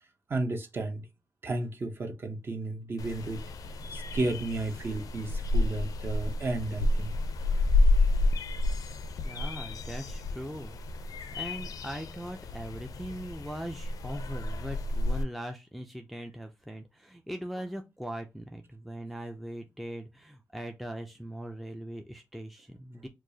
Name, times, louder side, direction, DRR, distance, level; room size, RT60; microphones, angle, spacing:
voice 1, 0.3-1.0 1.4-3.4 3.9-7.1, right 2 dB, 35° right, 0.7 m, -33 dB
sound 1, 3.0-15.2, left 2 dB, 75° left, 0.4 m, -30 dB
voice 2, 9.2-10.8 11.3-23.1, right 1 dB, ahead, 0.4 m, -40 dB
4.6 x 2.3 x 2.7 m
wide cardioid pair, 160°, 6 cm